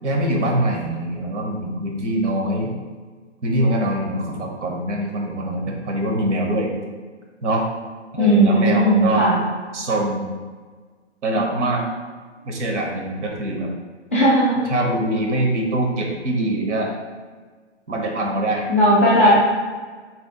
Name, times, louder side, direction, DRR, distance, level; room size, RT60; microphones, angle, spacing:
voice 1, 0.0-2.7 3.4-6.7 7.4-7.6 8.1-9.3 9.7-10.3 11.2-11.8 12.4-13.7 14.6-16.9 17.9-18.7 19.2-19.3, right 1 dB, 70° right, 1 dB, 0.9 m, -23 dB
voice 2, 8.2-9.4 14.1-14.6 18.7-19.3, equal, 10° left, -11 dB, 0.4 m, -16 dB
4.2 x 3.8 x 2.2 m, 1.5 s
hypercardioid pair, 155°, 36 cm